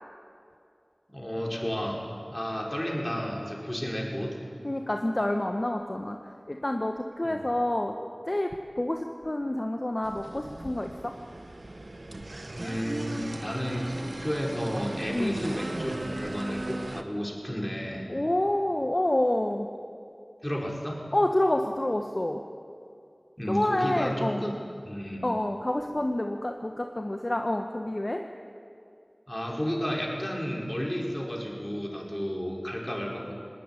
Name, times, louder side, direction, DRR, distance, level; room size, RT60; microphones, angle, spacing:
voice 1, 1.1-4.4 7.2-7.4 12.5-18.1 20.4-21.1 23.4-24.6 24.9-25.2 29.3-33.3, equal, 20° left, -1 dB, 5.4 m, -32 dB
voice 2, 4.6-7.9 8.2-11.1 15.1-15.4 18.1-19.7 21.1-22.4 23.5-24.4 25.2-28.2, left 1 dB, 45° left, 4 dB, 1.3 m, -28 dB
sound 1, 10.0-17.0, right 2 dB, 75° right, 1.4 m, -37 dB
19.5 x 19.0 x 10.0 m, 2.5 s
wide cardioid pair, 40°, 0 cm